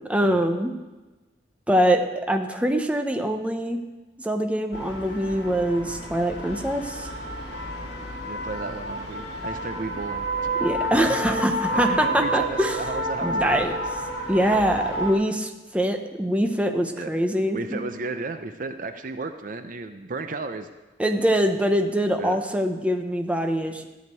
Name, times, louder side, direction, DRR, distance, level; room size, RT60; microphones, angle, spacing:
voice 1, 0.1-0.7 1.7-3.8 4.2-7.1 10.6-12.7 13.2-13.7 14.3-17.8 21.0-23.9, equal, 5° right, 5 dB, 0.8 m, -23 dB
sound 1, 4.7-15.1, right 1 dB, 65° left, 2.3 m, -30 dB
voice 2, 8.3-10.3 10.9-11.4 11.7-13.8 17.0-17.1 17.5-20.7 22.2-22.4, right 3 dB, 50° right, 9 dB, 0.6 m, -33 dB
14.0 x 5.1 x 9.2 m, 1.2 s
head